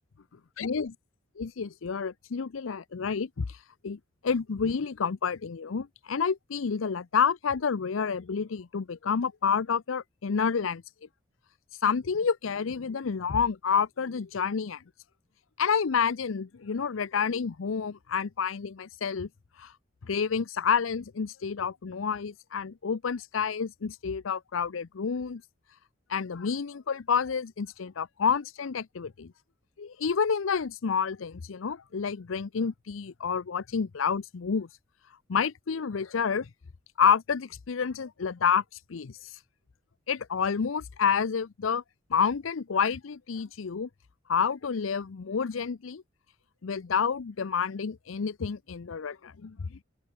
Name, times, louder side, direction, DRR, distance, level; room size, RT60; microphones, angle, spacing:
voice 1, 0.6-0.9 1.4-3.6 3.8-10.8 11.8-14.8 15.6-19.3 19.6-19.7 20.0-25.4 26.1-29.3 29.8-34.7 35.3-36.5 37.0-38.6 38.9-39.2 40.1-41.8 42.1-43.9 44.3-46.0 46.6-49.8, left 6 dB, 80° left, 0.6 m, -29 dB
open air
head